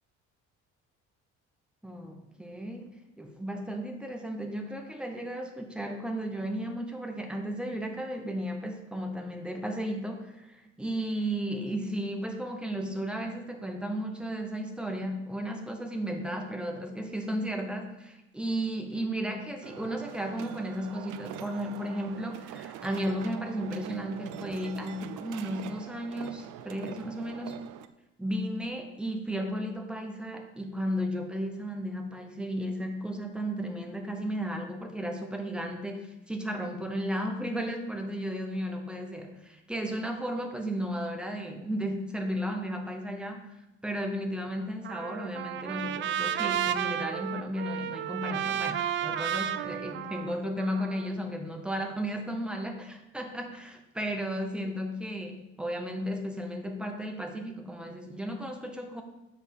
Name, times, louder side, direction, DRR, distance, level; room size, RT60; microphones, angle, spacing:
voice 1, 1.8-2.9 3.2-17.9 18.3-27.6 28.2-59.0, equal, 5° right, 4 dB, 0.8 m, -34 dB
sound 1, 19.6-27.9, right 11 dB, 85° right, 0.6 m, -43 dB
Trumpet, 44.8-51.1, right 10 dB, 40° right, 0.4 m, -32 dB
6.9 x 6.4 x 7.0 m, 0.95 s
cardioid pair, 175°, 30 cm